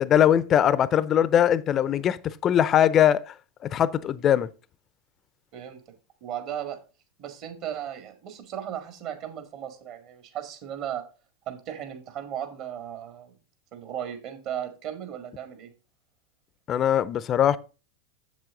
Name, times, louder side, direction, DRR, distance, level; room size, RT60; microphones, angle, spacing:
voice 1, 0.0-3.3 3.7-4.5 16.7-17.6, left 10 dB, 35° left, 0.6 m, -21 dB
voice 2, 6.2-6.8 7.2-11.0 11.5-13.3 13.7-15.7, right 10 dB, 50° right, 2.0 m, -36 dB
7.5 x 7.3 x 3.8 m
hypercardioid pair, 95°, 0 cm